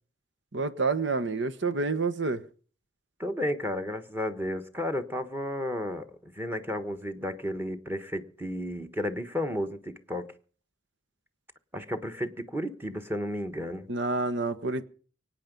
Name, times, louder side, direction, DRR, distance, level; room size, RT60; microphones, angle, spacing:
voice 1, 0.5-2.4 13.9-14.8, right 3 dB, 75° right, 1.3 m, -28 dB
voice 2, 3.2-10.3 11.7-13.9, left 1 dB, 10° right, 1.3 m, -33 dB
24.5 x 9.1 x 5.3 m
head